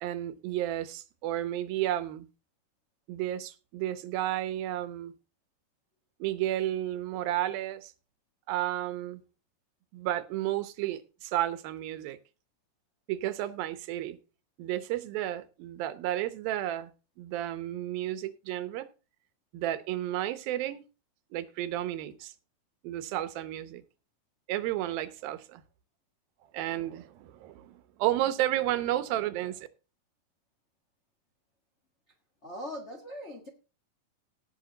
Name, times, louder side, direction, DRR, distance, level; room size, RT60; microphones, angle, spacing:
voice 1, 0.0-2.3 3.1-5.1 6.2-7.9 8.5-9.2 9.9-12.2 13.1-14.2 14.6-16.9 17.2-18.9 19.5-20.8 21.3-22.3 22.8-23.8 24.5-25.6 26.5-29.7, right 13 dB, 85° right, 14 dB, 2.7 m, -32 dB
voice 2, 32.4-33.5, equal, 80° left, 3 dB, 0.6 m, -40 dB
17.5 x 6.1 x 3.9 m, 0.32 s
omnidirectional pair, 4.1 m